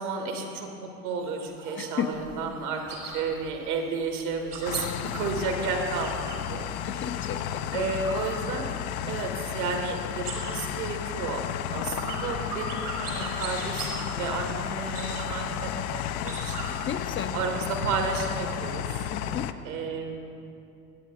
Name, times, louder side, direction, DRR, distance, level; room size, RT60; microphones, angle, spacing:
voice 1, 0.0-7.1 7.7-8.7 9.1-11.4 11.7-16.7 17.3-19.1 19.6-20.3, right 4 dB, 70° right, 3 dB, 1.7 m, -32 dB
sound 1, 1.2-6.5 6.9-9.0 9.3-9.8 10.1-16.9, right 3 dB, 90° right, 2.8 m, -40 dB
voice 2, 1.8-2.1 6.8-7.9 16.9-17.4 19.1-19.5, left 8 dB, 25° left, 7 dB, 0.6 m, -33 dB
sound 2, 4.6-19.5, left 10 dB, 70° left, 0.6 m, -33 dB
11.0 x 8.6 x 5.0 m, 2.6 s
figure-of-eight pair, 70°, 45 cm